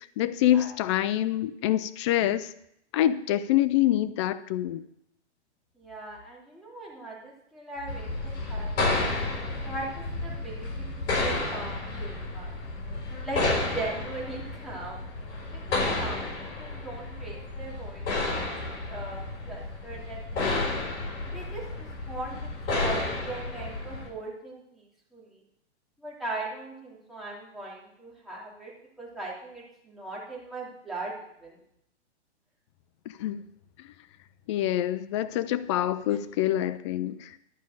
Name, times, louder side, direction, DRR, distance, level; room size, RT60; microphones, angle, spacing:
voice 1, 0.2-2.5 2.9-4.8 33.2-33.4 34.5-37.3, left 13 dB, 25° left, 14 dB, 0.4 m, -26 dB
voice 2, 5.8-8.8 9.6-12.9 13.2-15.0 15.5-18.6 18.9-20.6 21.3-24.9 25.1-25.4 26.0-31.6, right 2 dB, ahead, -6 dB, 3.1 m, -39 dB
sound 1, 7.9-24.1, left 2 dB, 60° left, 5.2 m, -31 dB
12.0 x 5.2 x 7.9 m, 0.75 s
hypercardioid pair, 145°, 35 cm